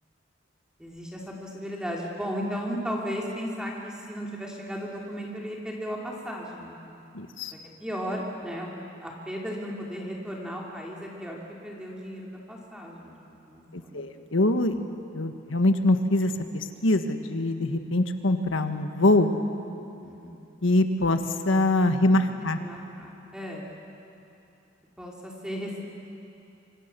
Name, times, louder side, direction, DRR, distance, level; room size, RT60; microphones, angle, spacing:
voice 1, 0.8-7.0 7.5-14.2 20.0-20.5 22.6-23.7 25.0-25.8, equal, 5° right, -2 dB, 2.7 m, -35 dB
voice 2, 7.1-7.5 13.7-14.8 15.1-19.3 20.6-21.2 21.4-22.6, left 1 dB, 85° left, 7 dB, 1.6 m, -23 dB
26.5 x 25.0 x 6.9 m, 2.7 s
head